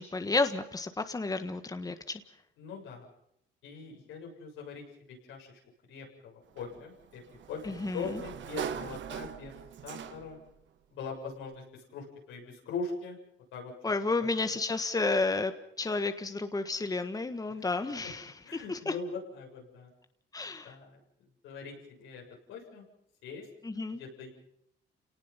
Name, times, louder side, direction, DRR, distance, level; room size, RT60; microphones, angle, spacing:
voice 1, 0.0-2.2 7.6-8.2 13.8-18.9 20.3-20.7 23.6-24.0, left 3 dB, 20° left, 8 dB, 1.5 m, -31 dB
voice 2, 2.6-3.1 3.6-5.5 5.9-7.2 7.5-7.6 7.9-9.5 9.8-10.4 10.9-13.2 13.5-13.7 14.2-14.3 17.5-17.6 18.4-19.9 20.6-21.0 21.4-22.2 22.5-22.8 23.2-23.5 24.0-24.3, left 4 dB, 90° left, 0 dB, 7.2 m, -41 dB
Sliding door, 6.6-10.5, right 8 dB, 70° right, 1.4 m, -41 dB
29.5 x 18.5 x 5.8 m, 0.73 s
cardioid pair, 90°, 20 cm